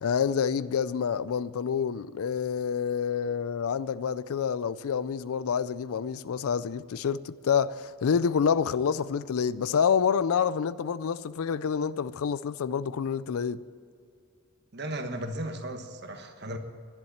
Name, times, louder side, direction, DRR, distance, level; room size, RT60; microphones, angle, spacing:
voice 1, 0.0-13.6, left 7 dB, 85° left, 0.4 m, -28 dB
voice 2, 14.7-16.6, right 1 dB, 50° right, 1.3 m, -35 dB
11.0 x 11.0 x 10.0 m
head